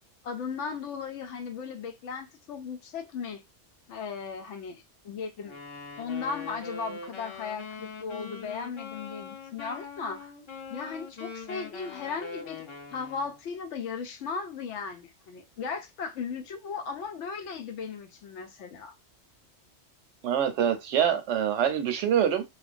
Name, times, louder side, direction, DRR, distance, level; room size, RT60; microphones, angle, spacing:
voice 1, 0.2-3.4 3.9-5.6 6.0-10.3 10.7-12.6 12.9-18.9, left 5 dB, 90° left, 0.9 m, -36 dB
Wind instrument woodwind instrument, 5.4-13.4, left 5 dB, 40° left, 0.4 m, -42 dB
voice 2, 20.2-22.4, right 9 dB, 80° right, 0.9 m, -25 dB
2.4 x 2.1 x 2.4 m
omnidirectional pair, 1.2 m